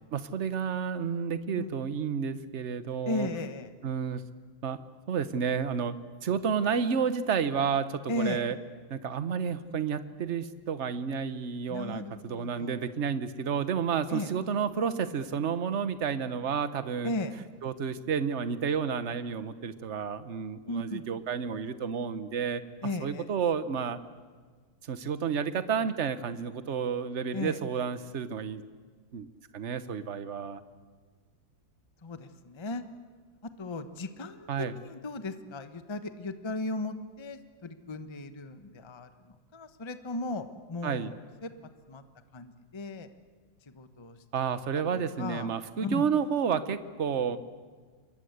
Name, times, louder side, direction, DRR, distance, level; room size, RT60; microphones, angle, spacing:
voice 1, 0.1-3.3 3.8-4.2 4.6-4.8 5.1-5.9 6.2-8.6 8.9-17.1 17.6-22.6 23.0-24.0 24.8-28.6 29.1-29.3 29.5-30.6 34.5-34.8 40.8-41.1 44.3-47.4, right 6 dB, 40° right, 12 dB, 1.1 m, -31 dB
voice 2, 3.1-3.7 8.1-8.4 11.7-12.9 14.1-14.3 17.0-17.3 20.7-21.1 22.8-23.3 27.3-27.6 32.0-32.9 33.4-34.5 34.7-41.1 41.4-41.5 41.9-42.0 42.3-43.1 43.7-44.2 44.8-45.5 45.8-46.0, left 2 dB, 20° left, 9 dB, 0.9 m, -36 dB
28.0 x 22.5 x 8.1 m, 1.5 s
omnidirectional pair, 2.3 m